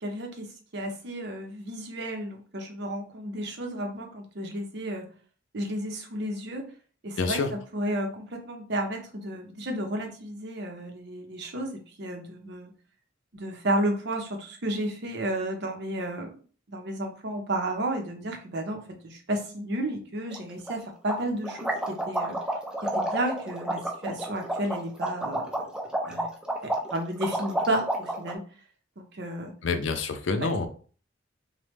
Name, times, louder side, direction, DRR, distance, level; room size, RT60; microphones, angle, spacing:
voice 1, 0.0-5.1 5.5-6.7 7.0-12.7 13.3-16.4 16.7-22.4 22.8-25.7 26.1-26.3 26.6-28.4 29.0-29.5 30.4-30.5, right 1 dB, 60° right, 3 dB, 0.7 m, -32 dB
voice 2, 7.2-7.5 29.6-30.7, left 4 dB, 75° left, 7 dB, 0.5 m, -27 dB
sound 1, 20.3-20.4 20.7-20.8 21.1-28.3, right 1 dB, 5° right, 0.5 m, -30 dB
3.1 x 2.2 x 3.3 m, 0.41 s
head